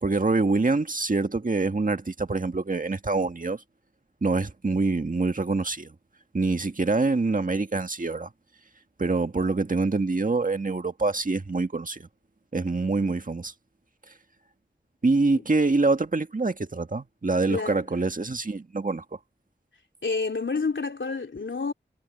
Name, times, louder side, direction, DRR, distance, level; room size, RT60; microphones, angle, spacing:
voice 1, 0.0-3.6 4.2-5.9 6.3-8.3 9.0-12.1 12.5-13.5 15.0-19.0, right 3 dB, 45° right, 1.7 m, -25 dB
voice 2, 17.5-17.9 20.0-21.7, left 4 dB, 75° left, 3.4 m, -29 dB
wide cardioid pair, 55°, 20 cm